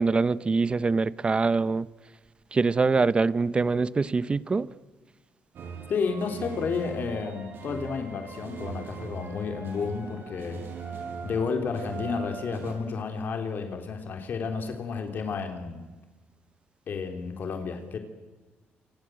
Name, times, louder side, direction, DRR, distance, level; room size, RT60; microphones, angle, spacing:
voice 1, 0.0-1.9 2.5-4.7, right 4 dB, 25° right, 0.9 m, -24 dB
sound 1, 5.5-12.7, right 5 dB, 60° right, 7.0 m, -40 dB
voice 2, 5.9-10.6 11.2-15.8 16.9-18.0, left 5 dB, 55° left, 3.4 m, -31 dB
28.5 x 26.5 x 7.9 m
cardioid pair, 120°, 4 cm